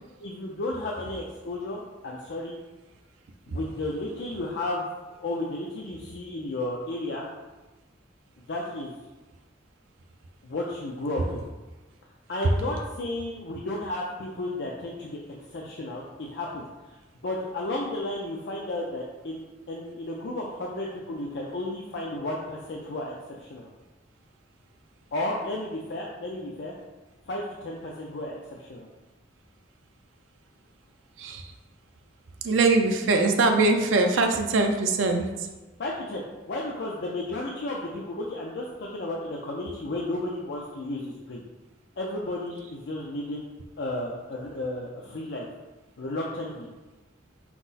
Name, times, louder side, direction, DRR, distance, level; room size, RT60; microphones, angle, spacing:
voice 1, 0.2-2.6 3.5-4.9 5.2-7.3 8.5-8.9 10.4-11.4 12.3-15.2 15.5-16.6 17.2-19.4 19.7-23.7 25.1-26.7 27.3-28.9 35.8-41.4 42.0-43.5 43.8-45.5 46.0-46.7, left 1 dB, 60° left, -3 dB, 0.5 m, -33 dB
voice 2, 31.2-31.5 32.4-35.5, right 3 dB, 85° right, 4 dB, 0.5 m, -22 dB
5.8 x 2.0 x 4.0 m, 1.1 s
head